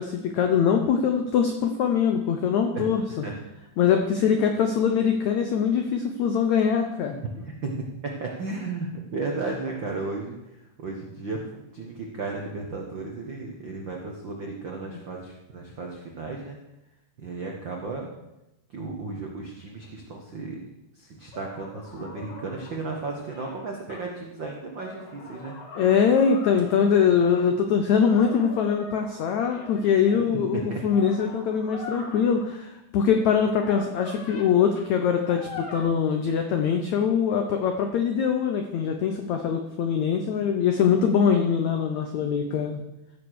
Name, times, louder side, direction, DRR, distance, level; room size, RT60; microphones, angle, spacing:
voice 1, 0.0-3.0 3.8-7.2 14.9-15.0 25.8-42.9, left 7 dB, 85° left, 5 dB, 1.6 m, -23 dB
voice 2, 2.7-3.3 7.3-7.7 8.0-16.6 17.2-18.1 18.7-20.7 20.9-25.5 30.3-30.8, right 3 dB, 75° right, 0 dB, 1.0 m, -34 dB
sound 1, 21.3-24.0 24.7-27.5 28.0-30.1 30.7-32.5 33.5-34.5 34.8-34.9 35.3-35.8, left 3 dB, 50° left, 3.1 m, -42 dB
15.0 x 7.1 x 6.5 m, 0.93 s
omnidirectional pair, 4.6 m